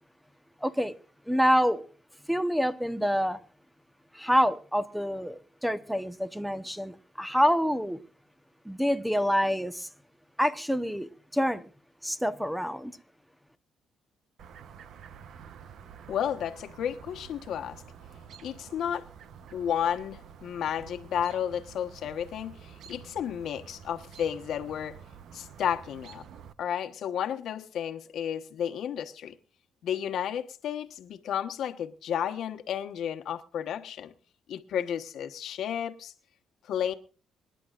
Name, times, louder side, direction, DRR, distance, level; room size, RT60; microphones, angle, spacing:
voice 1, 0.6-1.0 1.3-1.8 2.3-3.4 4.1-8.0 8.6-9.9 10.4-11.7 12.0-12.9, equal, ahead, 1.1 m, -27 dB
Chirp tweet, 14.4-26.5, right 7 dB, 70° right, 0.9 m, -49 dB
voice 2, 16.1-17.8 18.4-19.1 19.5-25.0 25.3-26.2 26.6-29.3 29.8-34.1 34.5-36.1 36.7-36.9, left 9 dB, 75° left, 1.2 m, -32 dB
25.0 x 10.5 x 2.5 m
cardioid pair, 90°, 0 cm